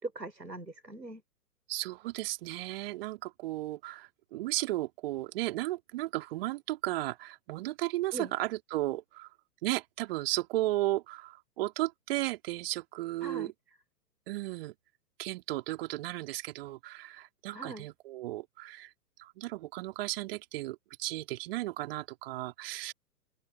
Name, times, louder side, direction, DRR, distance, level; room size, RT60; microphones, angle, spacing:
voice 1, 0.0-1.2 8.1-8.3 13.2-13.5 17.5-17.9, right 2 dB, 85° right, 3.9 m, -40 dB
voice 2, 1.7-9.3 9.6-13.5 14.3-14.7 15.2-18.9 19.2-22.9, right 17 dB, 35° right, 3.7 m, -34 dB
open air
figure-of-eight pair, 115°, 48 cm